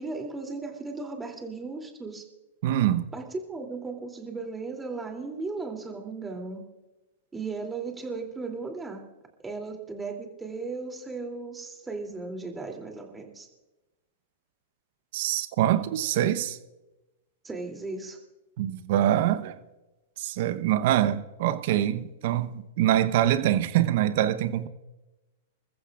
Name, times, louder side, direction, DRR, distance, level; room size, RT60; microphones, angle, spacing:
voice 1, 0.0-2.2 3.1-6.7 7.3-9.1 9.4-13.5 17.4-18.2, right 3 dB, 15° right, 2.8 m, -36 dB
voice 2, 2.6-3.1 15.1-16.6 18.6-19.6 20.2-24.7, right 12 dB, 60° right, 0.9 m, -24 dB
27.0 x 14.5 x 2.4 m
hypercardioid pair, 110°, 0 cm